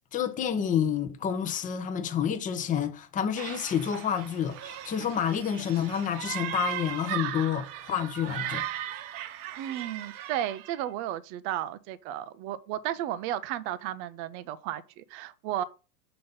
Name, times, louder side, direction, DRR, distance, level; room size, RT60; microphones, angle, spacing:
voice 1, 0.1-8.6, left 8 dB, 15° left, 0.6 m, -29 dB
sound 1, 3.4-10.8, right 12 dB, 50° right, 0.9 m, -37 dB
voice 2, 9.6-15.6, right 12 dB, 30° right, 0.4 m, -34 dB
6.5 x 4.0 x 5.2 m
hypercardioid pair, 125°, 49 cm